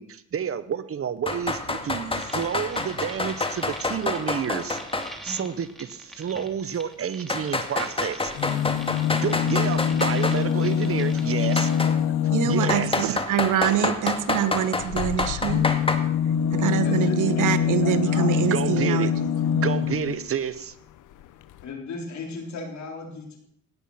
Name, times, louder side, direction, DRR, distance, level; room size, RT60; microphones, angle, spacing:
voice 1, 0.0-4.8 5.2-8.4 9.1-11.7 12.4-13.2 17.9-19.1 19.5-20.7, right 8 dB, 50° right, 14 dB, 1.0 m, -30 dB
sound 1, 1.3-5.1 5.4-5.5 6.4-6.5 7.3-10.4 11.6-11.9 12.7-16.0, left 2 dB, 20° left, 2.0 m, -28 dB
voice 2, 1.7-2.2 12.3-15.6 16.5-19.1, right 10 dB, 85° right, 10 dB, 1.3 m, -25 dB
sound 2, 2.2-11.8, equal, ahead, 2.8 m, -44 dB
sound 3, 8.3-13.1 14.8-20.3 21.2-21.3 21.5-21.6, left 8 dB, 85° left, 0.9 m, -24 dB
voice 3, 16.8-18.5 21.6-23.4, left 4 dB, 65° left, 2 dB, 4.0 m, -36 dB
17.5 x 10.5 x 5.8 m, 0.69 s
cardioid pair, 90°, 30 cm